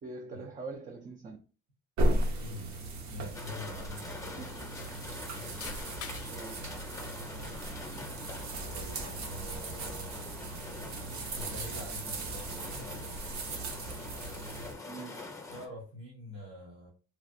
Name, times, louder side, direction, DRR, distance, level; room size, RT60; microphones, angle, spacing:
voice 1, 0.0-1.4 4.4-4.5 6.3-6.6 14.8-15.4, right 3 dB, 25° right, 0.4 m, -43 dB
sound 1, 2.0-14.7, right 1 dB, 65° right, 0.8 m, -36 dB
voice 2, 2.1-2.8 3.1-4.5 5.3-5.8 8.7-10.2 11.3-13.2 15.5-16.9, left 1 dB, 85° right, 1.1 m, -46 dB
sound 2, 3.3-15.7, left 3 dB, 10° left, 0.7 m, -45 dB
sound 3, 4.4-6.4 7.0-8.1 8.4-9.3, left 8 dB, 50° left, 0.5 m, -49 dB
3.1 x 2.5 x 2.6 m
cardioid pair, 100°, 30 cm